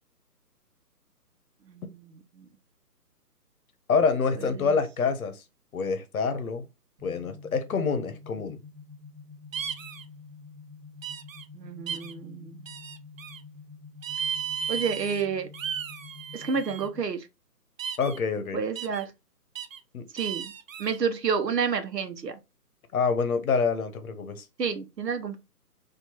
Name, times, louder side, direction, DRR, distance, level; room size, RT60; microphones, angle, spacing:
voice 1, 3.9-5.4 5.7-6.7 7.0-8.6 18.0-18.6 19.9-20.0 22.9-24.5, left 5 dB, 60° left, 0.9 m, -27 dB
sound 1, 7.0-17.0, left 4 dB, 20° right, 1.2 m, -48 dB
sound 2, 9.5-10.0 11.0-11.4 11.9-12.1 12.7-13.4 14.0-15.2 15.5-16.9 17.8-18.2 18.8-19.0 19.6-19.8 20.2-21.0, right 7 dB, 55° right, 0.6 m, -35 dB
voice 2, 11.5-12.7 14.7-15.5 16.3-17.2 18.5-19.1 20.1-20.5 20.8-22.3 24.6-25.4, right 6 dB, 85° right, 0.9 m, -29 dB
4.3 x 2.6 x 2.8 m
figure-of-eight pair, 145°, 48 cm